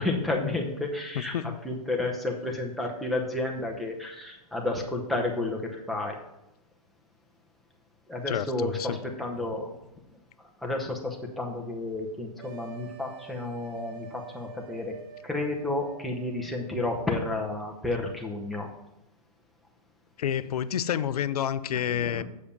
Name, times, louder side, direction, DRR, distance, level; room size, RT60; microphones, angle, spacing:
voice 1, 0.0-1.3 1.6-6.2 8.1-9.7 10.6-14.9 15.2-18.7 22.0-22.2, left 2 dB, ahead, 0.7 m, -31 dB
voice 2, 8.3-9.0 20.2-22.2, left 9 dB, 75° left, 0.5 m, -29 dB
sound 1, 12.4-16.8, right 8 dB, 35° right, 0.8 m, -46 dB
7.1 x 5.0 x 6.7 m
hypercardioid pair, 160°, 20 cm